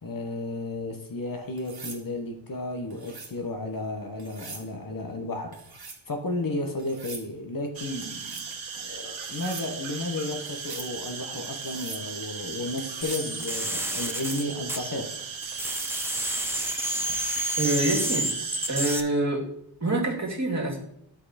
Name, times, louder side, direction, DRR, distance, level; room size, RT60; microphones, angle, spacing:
voice 1, 0.0-5.6 6.1-8.5 8.7-15.1, left 2 dB, 45° left, 1.3 m, -33 dB
sound 1, 1.6-2.0 2.9-3.4 4.2-4.7 5.5-6.0 6.8-7.3 8.0-8.5 9.2-9.7 10.5-10.9 11.6-12.0 12.8-13.3 13.9-14.4 16.4-16.6, right 4 dB, 50° right, 1.8 m, -42 dB
sound 2, 7.7-19.0, right 6 dB, 80° right, 1.3 m, -37 dB
sound 3, 13.0-15.2 15.4-19.0, right 1 dB, 5° right, 0.8 m, -30 dB
voice 2, 17.6-18.3 18.7-19.4 19.8-20.8, right 2 dB, 35° right, 2.5 m, -26 dB
11.0 x 5.8 x 4.3 m
wide cardioid pair, 90°, 46 cm